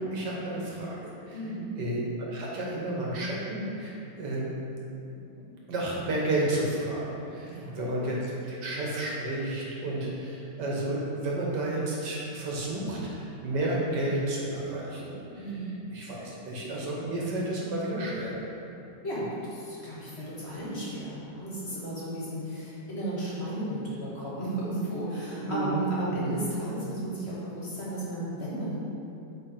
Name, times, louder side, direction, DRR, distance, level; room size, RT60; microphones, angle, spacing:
voice 1, 0.0-1.4 1.8-2.0 2.3-4.5 5.0-5.1 5.7-8.2 8.5-15.2 15.9-18.3 25.3-25.8 26.1-26.3, right 1 dB, 75° right, -4 dB, 1.8 m, -31 dB
voice 2, 1.3-1.7 7.4-7.9 15.4-15.7 19.0-28.8, right 1 dB, 40° left, -7 dB, 1.5 m, -34 dB
8.5 x 3.6 x 3.8 m, 2.7 s
omnidirectional pair, 1.8 m